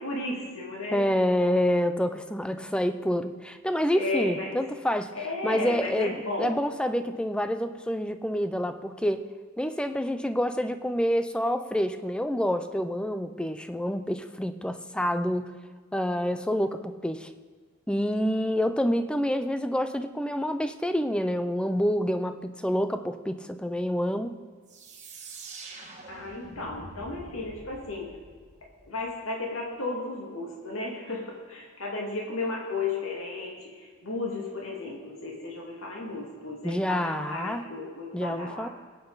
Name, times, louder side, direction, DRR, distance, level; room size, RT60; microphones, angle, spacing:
voice 1, 0.0-1.1 3.9-4.6 5.1-6.6 26.1-28.1 28.9-38.7, left 3 dB, 90° left, -2 dB, 2.2 m, -34 dB
voice 2, 0.9-5.1 5.4-9.3 9.6-15.5 15.9-17.3 17.9-24.4 36.6-37.6 38.1-38.7, equal, 5° left, 9 dB, 0.5 m, -27 dB
sound 1, 24.7-29.2, right 3 dB, 35° right, 1.9 m, -46 dB
21.0 x 9.0 x 4.0 m, 1.5 s
head